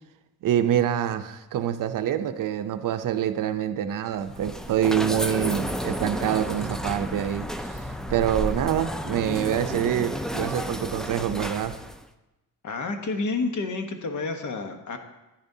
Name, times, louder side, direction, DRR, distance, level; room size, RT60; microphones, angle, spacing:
voice 1, 0.4-7.8 8.1-11.7, right 10 dB, 60° right, 9 dB, 0.6 m, -26 dB
sound 1, 4.2-12.0, equal, ahead, 0.4 m, -32 dB
voice 2, 12.6-15.0, left 3 dB, 50° left, 6 dB, 1.1 m, -29 dB
10.5 x 10.0 x 2.7 m, 1.0 s
cardioid pair, 95°, 37 cm